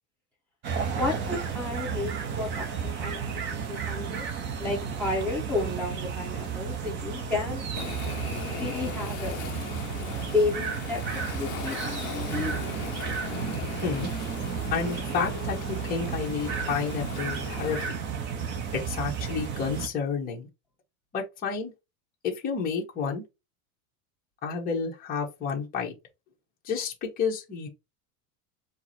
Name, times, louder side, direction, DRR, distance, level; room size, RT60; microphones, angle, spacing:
sound 1, 0.6-19.9, right 6 dB, 30° right, 0.6 m, -33 dB
voice 1, 0.9-4.3 4.6-7.6 8.3-9.4 9.9-12.5, left 3 dB, 5° left, 1.2 m, -32 dB
Waves surf, 7.8-17.9, left 11 dB, 40° left, 0.6 m, -39 dB
voice 2, 14.7-17.8 18.7-20.5 21.1-21.7 22.2-23.2 24.4-25.9 26.6-27.7, left 5 dB, 20° left, 1.1 m, -30 dB
4.6 x 2.1 x 4.1 m
supercardioid pair, 165°, 40 cm